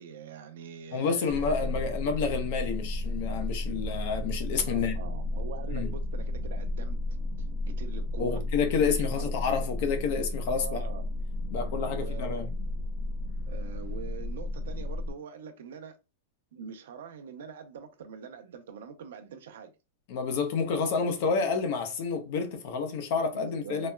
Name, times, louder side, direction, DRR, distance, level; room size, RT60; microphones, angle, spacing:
voice 1, 0.0-1.7 4.7-7.0 7.7-8.4 9.0-9.3 10.6-11.1 11.9-12.5 13.5-16.0 16.5-19.7 23.3-23.9, right 6 dB, 75° right, 0.6 m, -43 dB
voice 2, 0.9-5.0 5.7-5.9 8.2-10.8 11.5-12.5 20.1-23.9, left 5 dB, 45° left, 0.7 m, -29 dB
sound 1, 1.3-15.1, left 2 dB, 5° left, 0.8 m, -33 dB
4.0 x 2.0 x 2.2 m
supercardioid pair, 180°, 0 cm